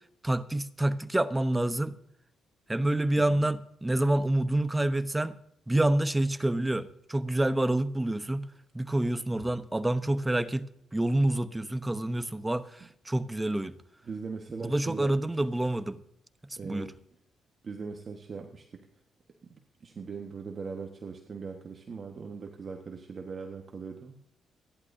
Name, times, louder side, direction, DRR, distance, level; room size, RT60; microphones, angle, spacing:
voice 1, 0.2-2.0 2.7-5.3 5.7-8.5 8.7-13.8 14.6-16.0 16.6-16.9, right 1 dB, 10° right, 0.9 m, -28 dB
voice 2, 14.1-15.4 16.6-16.9 17.6-18.9 19.4-24.2, right 5 dB, 40° right, 1.4 m, -40 dB
28.5 x 11.0 x 2.7 m
cardioid pair, 90°, 0 cm